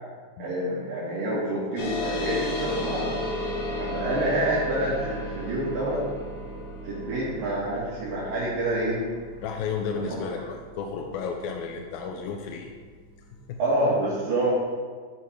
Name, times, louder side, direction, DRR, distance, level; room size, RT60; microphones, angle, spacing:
voice 1, 0.4-3.2 3.8-6.0 6.8-9.1 9.9-10.2 13.6-14.5, right 1 dB, 65° right, -9 dB, 3.8 m, -27 dB
sound 1, 1.8-12.7, left 1 dB, 65° left, 3.2 m, -34 dB
voice 2, 9.4-12.7 13.5-13.6, left 5 dB, 85° left, 3 dB, 2.4 m, -33 dB
13.0 x 6.4 x 4.7 m, 1.5 s
omnidirectional pair, 4.4 m